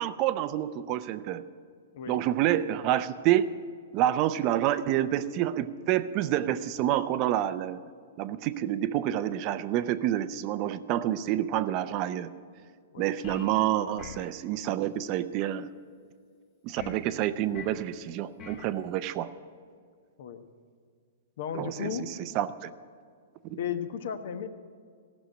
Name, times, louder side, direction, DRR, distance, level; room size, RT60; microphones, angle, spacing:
voice 1, 0.0-1.4 2.1-3.5 3.9-7.8 8.2-12.3 13.0-15.7 16.6-19.3 21.5-22.7 23.4-23.6, right 12 dB, 35° right, 13 dB, 0.5 m, -28 dB
sound 1, 13.2-13.6 14.0-14.3 16.8-17.0 17.5-17.9 18.4-18.7, left 7 dB, 35° left, 1.3 m, -43 dB
voice 2, 21.4-22.3 23.6-24.5, left 8 dB, 60° left, 10 dB, 1.0 m, -35 dB
14.5 x 6.4 x 9.9 m, 2.1 s
hypercardioid pair, 145°, 0 cm